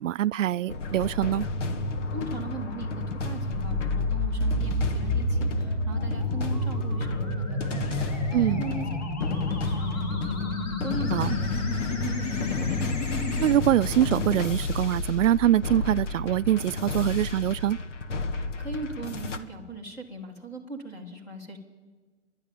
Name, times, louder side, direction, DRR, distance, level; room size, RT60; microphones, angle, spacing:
voice 1, 0.0-1.5 8.3-8.6 11.1-11.4 13.4-17.8, right 12 dB, 85° right, 0.5 m, -24 dB
sound 1, 0.7-19.4, left 2 dB, 75° left, 1.7 m, -31 dB
voice 2, 2.1-8.9 9.3-13.0 18.4-21.6, right 2 dB, 10° left, 1.3 m, -39 dB
sound 2, 3.5-13.5, left 2 dB, 35° left, 2.9 m, -30 dB
29.0 x 11.5 x 8.5 m
hypercardioid pair, 175°, 37 cm